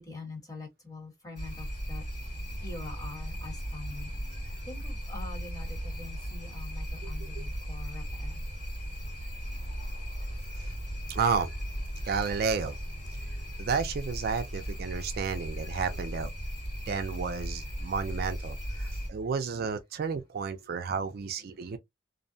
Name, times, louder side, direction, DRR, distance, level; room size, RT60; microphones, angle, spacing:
voice 1, 0.0-4.1 4.7-8.4 21.5-21.8, left 3 dB, 20° left, 1.2 m, -45 dB
sound 1, 1.4-19.1, equal, 50° left, 1.6 m, -37 dB
voice 2, 7.0-7.4 10.6-10.7 11.1-11.5 12.0-12.8 13.6-16.3 16.9-21.8, right 5 dB, 55° right, 0.4 m, -32 dB
2.5 x 2.1 x 2.5 m
head